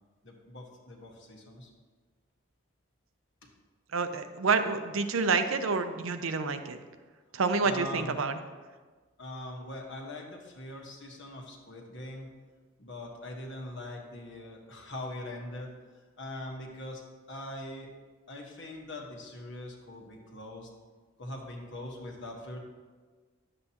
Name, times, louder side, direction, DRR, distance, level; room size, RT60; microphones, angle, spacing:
voice 1, 0.2-1.7 3.4-3.5 7.6-8.2 9.2-12.3 12.8-15.7 16.2-17.0 17.3-17.9 18.3-20.7 21.2-22.6, left 1 dB, 60° left, 1 dB, 1.4 m, -42 dB
voice 2, 3.9-6.8 7.3-8.4, right 4 dB, 90° right, 8 dB, 0.6 m, -28 dB
11.0 x 7.7 x 2.9 m, 1.4 s
head